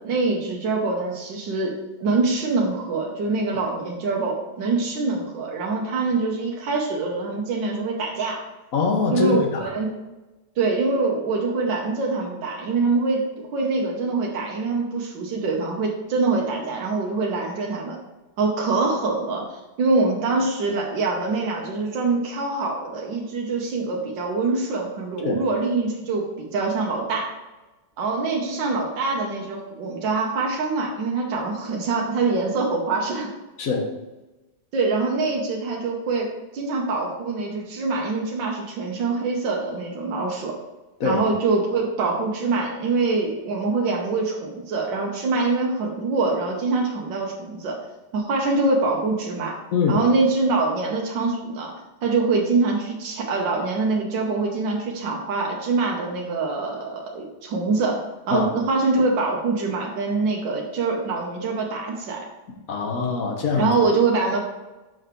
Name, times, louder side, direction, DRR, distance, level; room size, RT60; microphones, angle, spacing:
voice 1, 0.0-8.4 9.1-9.9 10.6-18.0 18.4-27.3 28.0-33.3 34.7-36.3 36.5-40.5 41.0-47.8 48.1-49.5 49.9-51.7 52.0-58.0 58.3-62.2 63.5-64.4, right 3 dB, 85° right, -1 dB, 1.7 m, -24 dB
voice 2, 8.7-9.5 25.2-25.4 33.6-33.8 41.0-41.2 49.7-50.0 58.3-58.5 62.7-63.7, left 4 dB, 55° left, 2 dB, 1.3 m, -23 dB
6.2 x 5.0 x 4.5 m, 1.1 s
omnidirectional pair, 1.9 m